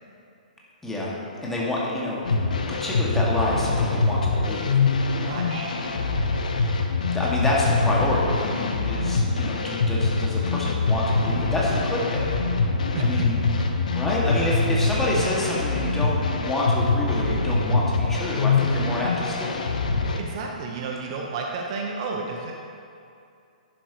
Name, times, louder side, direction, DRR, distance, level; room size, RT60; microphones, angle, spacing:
voice 1, 1.4-2.2 2.8-4.7 7.1-12.3 13.0-13.4 13.9-19.6, left 1 dB, 5° left, -6 dB, 2.0 m, -27 dB
sound 1, 2.2-20.2, left 3 dB, 65° left, 0.9 m, -24 dB
voice 2, 5.2-5.7 12.9-13.2 20.0-22.5, right 4 dB, 40° right, 0 dB, 1.0 m, -31 dB
11.5 x 11.0 x 3.0 m, 2.5 s
figure-of-eight pair, 120°, 5 cm